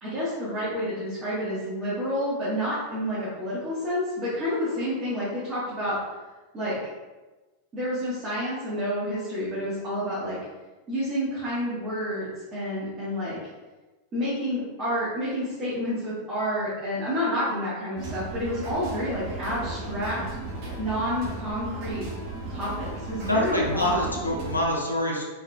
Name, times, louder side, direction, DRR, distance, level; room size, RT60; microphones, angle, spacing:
voice 1, 0.0-6.0 6.5-6.8 7.7-10.4 10.9-13.4 14.1-20.2 20.8-22.0 22.5-24.0, equal, 25° right, -10 dB, 1.3 m, -29 dB
sound 1, 18.0-24.6, right 2 dB, 45° right, 0.9 m, -35 dB
voice 2, 23.3-25.3, left 1 dB, 85° left, -2 dB, 0.7 m, -25 dB
3.6 x 3.3 x 2.3 m, 1.2 s
figure-of-eight pair, 90°, 0 cm